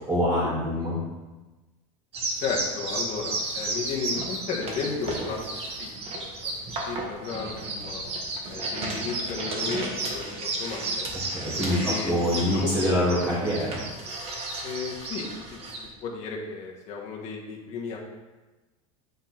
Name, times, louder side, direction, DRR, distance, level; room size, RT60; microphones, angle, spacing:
voice 1, 0.1-1.0 11.3-11.8 12.0-13.8, equal, 15° right, -7 dB, 2.5 m, -25 dB
sound 1, 2.1-15.9, right 2 dB, 35° right, 1.4 m, -33 dB
voice 2, 2.4-5.4 5.8-6.5 6.8-8.0 8.5-11.1 11.7-13.0 14.6-15.6 16.0-18.0, left 5 dB, 45° left, -1 dB, 1.5 m, -34 dB
8.7 x 4.0 x 4.4 m, 1.2 s
supercardioid pair, 140°, 17 cm